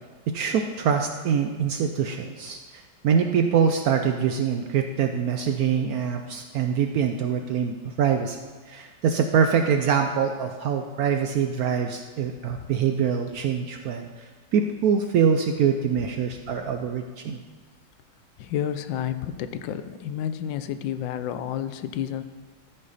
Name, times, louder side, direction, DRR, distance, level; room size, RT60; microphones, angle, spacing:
voice 1, 0.3-8.4 8.7-14.1 14.5-17.4, right 7 dB, 75° right, 5 dB, 0.8 m, -24 dB
voice 2, 18.4-22.2, left 10 dB, 85° left, 11 dB, 1.3 m, -31 dB
13.5 x 5.6 x 4.0 m, 1.5 s
omnidirectional pair, 2.0 m